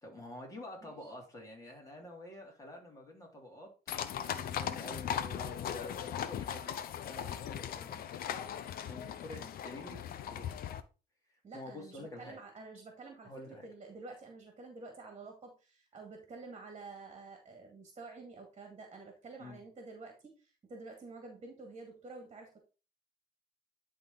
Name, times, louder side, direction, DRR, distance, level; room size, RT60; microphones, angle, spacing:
voice 1, 0.0-3.7 4.3-6.7 7.1-10.5 11.5-12.4 13.2-13.6 19.4-19.6, left 1 dB, 20° left, 0 dB, 3.2 m, -48 dB
voice 2, 0.8-1.1 11.4-22.6, right 3 dB, 35° right, 3 dB, 2.1 m, -49 dB
sound 1, 3.9-10.8, left 9 dB, 60° left, 0.8 m, -38 dB
11.0 x 3.8 x 4.0 m, 0.33 s
cardioid pair, 110°, 17 cm